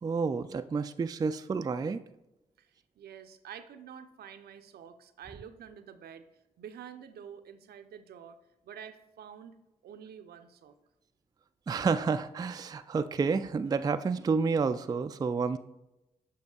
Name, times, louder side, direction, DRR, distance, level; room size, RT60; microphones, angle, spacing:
voice 1, 0.0-2.0 11.7-15.6, right 5 dB, 20° right, 10 dB, 0.3 m, -29 dB
voice 2, 2.6-6.3 6.6-8.4 8.6-10.8, right 8 dB, 65° right, 9 dB, 0.6 m, -48 dB
8.3 x 5.8 x 2.3 m, 0.92 s
hypercardioid pair, 40°, 17 cm